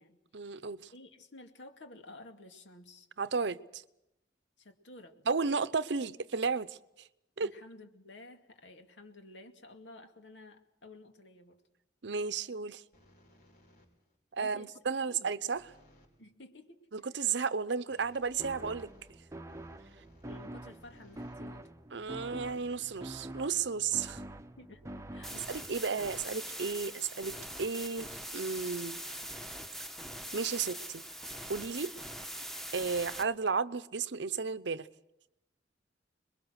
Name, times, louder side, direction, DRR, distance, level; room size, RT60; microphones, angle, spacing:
voice 1, 0.3-0.9 3.2-3.8 5.3-6.8 7.4-7.5 12.0-12.8 14.3-15.6 16.9-18.9 21.9-24.2 25.5-29.0 30.3-31.0 31.5-31.9 32.7-34.9, right 5 dB, 75° right, 16 dB, 0.7 m, -33 dB
voice 2, 0.9-3.1 4.6-5.3 7.4-11.6 14.4-14.7 15.1-15.3 16.2-16.8 20.2-21.7 24.6-25.5, left 2 dB, 85° left, 5 dB, 2.3 m, -53 dB
sound 1, 12.9-14.2 15.5-16.2 17.9-21.5 22.2-23.7, equal, 55° left, 4.7 m, -62 dB
sound 2, 18.4-25.8, right 1 dB, 15° right, 0.8 m, -46 dB
sound 3, 25.2-33.2, equal, ahead, 1.1 m, -42 dB
26.5 x 22.0 x 6.5 m, 0.88 s
head